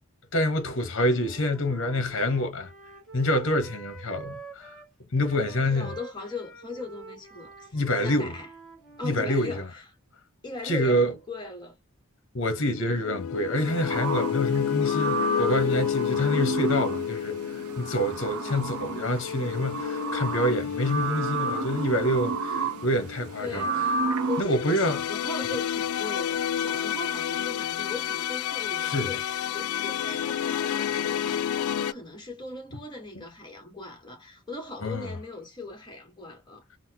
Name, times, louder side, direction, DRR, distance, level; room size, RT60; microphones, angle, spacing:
voice 1, 0.3-2.7 3.1-4.7 5.1-5.9 7.7-8.3 9.0-9.7 10.6-11.1 12.3-23.6 24.4-25.0 28.8-29.1 34.8-35.1, left 1 dB, 60° left, 0.8 m, -27 dB
Wind instrument woodwind instrument, 0.9-9.3, right 3 dB, ahead, 1.5 m, -47 dB
voice 2, 5.5-8.5 9.0-9.9 10.4-11.8 18.2-18.7 23.4-23.9 24.3-36.6, left 2 dB, 20° left, 1.2 m, -39 dB
sound 1, 12.7-31.9, left 9 dB, 90° left, 0.3 m, -30 dB
sound 2, 13.7-24.4, right 3 dB, 85° right, 0.5 m, -32 dB
4.0 x 2.0 x 2.8 m
head